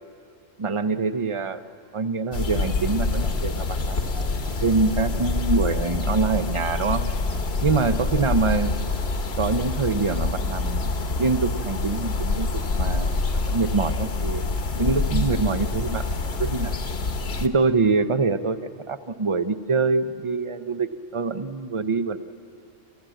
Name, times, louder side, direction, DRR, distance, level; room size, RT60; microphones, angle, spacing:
voice 1, 0.6-1.6 1.9-7.0 7.6-8.7 9.4-10.9 11.2-14.4 14.8-16.7 17.4-22.2, right 4 dB, 40° right, 11 dB, 0.4 m, -25 dB
sound 1, 2.3-17.5, left 3 dB, 50° left, 1.3 m, -26 dB
27.5 x 15.0 x 9.0 m, 2.4 s
omnidirectional pair, 1.4 m